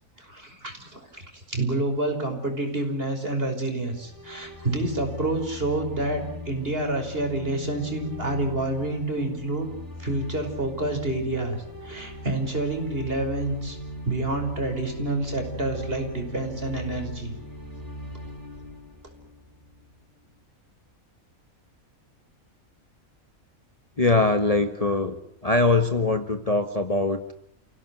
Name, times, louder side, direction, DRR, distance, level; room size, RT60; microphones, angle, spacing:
voice 1, 0.2-9.7 10.0-13.8 14.1-17.4, right 2 dB, 40° right, 4 dB, 5.8 m, -28 dB
sound 1, 3.9-20.0, left 1 dB, 15° right, 3.5 m, -39 dB
voice 2, 24.0-27.3, left 3 dB, 25° left, 8 dB, 1.5 m, -22 dB
30.0 x 17.5 x 9.6 m, 0.76 s
omnidirectional pair, 1.5 m